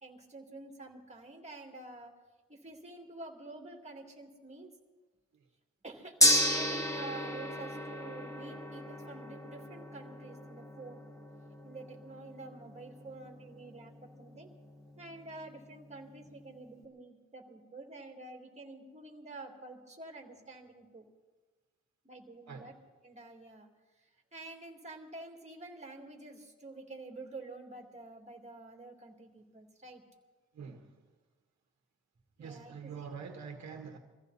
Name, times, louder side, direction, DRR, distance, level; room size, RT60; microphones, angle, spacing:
voice 1, 0.0-2.1 2.5-4.7 5.8-11.0 11.6-14.5 15.0-21.0 22.0-22.7 23.0-23.7 24.0-30.0 32.4-33.1, right 2 dB, 20° right, 2 dB, 2.5 m, -48 dB
Gong, 6.2-16.4, left 1 dB, 10° left, 1.8 m, -34 dB
voice 2, 30.5-31.0 32.4-34.0, right 6 dB, 60° right, 3 dB, 1.5 m, -45 dB
23.5 x 15.0 x 4.1 m, 1.3 s
cardioid pair, 105°, 30 cm